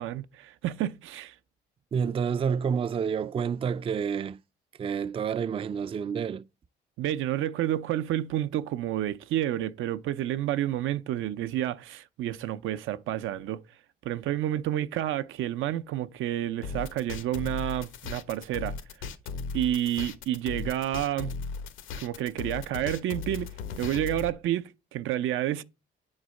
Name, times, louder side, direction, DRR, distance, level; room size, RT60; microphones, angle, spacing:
voice 1, 0.0-1.3 7.0-13.6 14.0-18.7 19.5-21.3 22.0-23.5 23.8-25.6, right 12 dB, 85° right, 0.6 m, -30 dB
voice 2, 1.9-4.4 4.8-6.5, right 7 dB, 30° right, 0.3 m, -29 dB
sound 1, 16.6-24.3, left 5 dB, 85° left, 1.0 m, -37 dB
9.5 x 4.0 x 6.3 m
cardioid pair, 90°, 20 cm